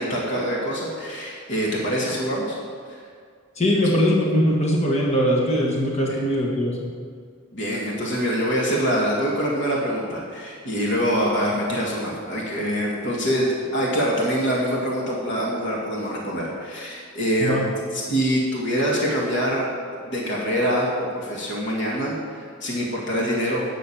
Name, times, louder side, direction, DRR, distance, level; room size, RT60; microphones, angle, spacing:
voice 1, 0.0-2.6 7.5-17.6 17.9-19.7 20.1-23.7, equal, 55° left, -3 dB, 2.0 m, -24 dB
voice 2, 3.6-6.9 17.4-17.7, equal, 30° left, -3 dB, 1.6 m, -21 dB
9.9 x 6.5 x 7.3 m, 2.1 s
head